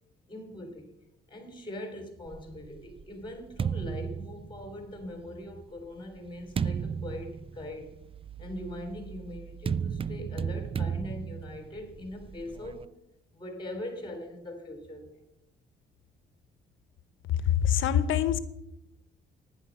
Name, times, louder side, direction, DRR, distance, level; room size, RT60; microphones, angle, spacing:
voice 1, 0.3-0.9 1.3-7.9 8.4-12.9 13.3-15.2, left 1 dB, 25° left, 4 dB, 3.8 m, -41 dB
sound 1, 2.3-5.1 5.8-12.8, right 7 dB, 30° right, 0.4 m, -35 dB
voice 2, 17.5-18.4, left 9 dB, 80° left, 13 dB, 0.9 m, -24 dB
10.5 x 9.7 x 5.4 m, 0.83 s
cardioid pair, 90°, 20 cm